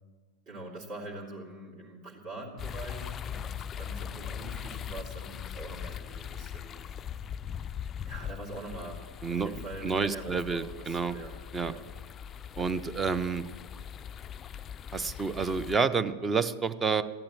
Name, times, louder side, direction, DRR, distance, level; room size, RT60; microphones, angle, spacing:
voice 1, 0.5-3.5 3.8-6.8 8.0-9.0 9.3-11.8, right 2 dB, 45° right, -4 dB, 3.0 m, -43 dB
sound 1, 2.6-15.8, left 8 dB, 25° left, 0.4 m, -40 dB
voice 2, 9.2-11.2 11.5-11.7 12.6-13.4 14.9-17.0, right 5 dB, 15° right, 15 dB, 0.7 m, -29 dB
15.0 x 12.0 x 7.5 m, 1.5 s
figure-of-eight pair, 90°, 0 cm